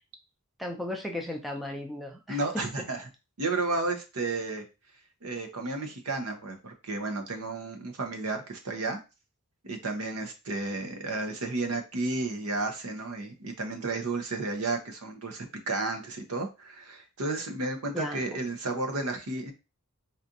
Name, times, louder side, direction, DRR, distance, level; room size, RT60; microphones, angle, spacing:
voice 1, 0.6-2.7 17.9-18.2, left 1 dB, ahead, 2 dB, 0.4 m, -35 dB
voice 2, 2.3-3.1 3.4-4.6 5.2-9.0 9.6-19.5, right 3 dB, 75° right, 5 dB, 0.8 m, -32 dB
4.1 x 2.5 x 2.6 m, 0.28 s
head